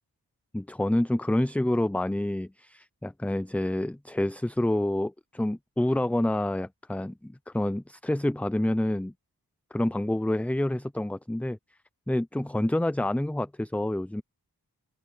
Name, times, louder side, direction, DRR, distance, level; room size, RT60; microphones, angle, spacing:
voice 1, 0.5-9.1 9.7-11.6 12.1-14.2, left 1 dB, 5° left, 0.4 m, -28 dB
open air
wide cardioid pair, 55°, 39 cm